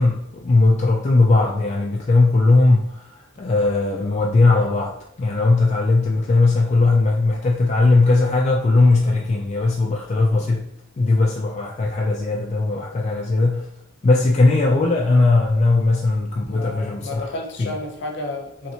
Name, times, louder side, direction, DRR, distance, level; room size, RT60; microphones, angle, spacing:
voice 1, 0.0-3.1 3.4-10.7 11.0-13.7 14.0-17.3 17.6-17.7, left 3 dB, 35° left, -1 dB, 0.3 m, -18 dB
voice 2, 16.5-18.7, left 2 dB, 65° left, 1 dB, 0.7 m, -32 dB
3.1 x 2.8 x 2.7 m, 0.72 s
head